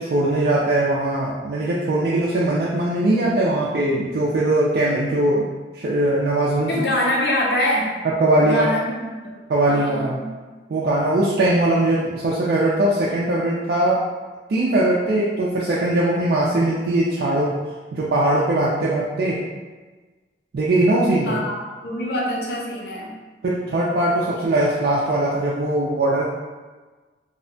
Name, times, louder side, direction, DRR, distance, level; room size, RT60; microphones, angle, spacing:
voice 1, 0.0-5.5 5.7-6.7 8.0-8.7 9.5-10.2 10.7-14.1 14.5-17.6 17.9-19.4 20.5-21.4 23.4-26.2, right 1 dB, 55° right, -6 dB, 0.3 m, -20 dB
voice 2, 6.7-8.0 8.4-9.3 9.7-10.3 21.3-21.5 21.8-23.2, left 1 dB, 65° left, -3 dB, 0.6 m, -24 dB
2.7 x 2.1 x 2.6 m, 1.3 s
head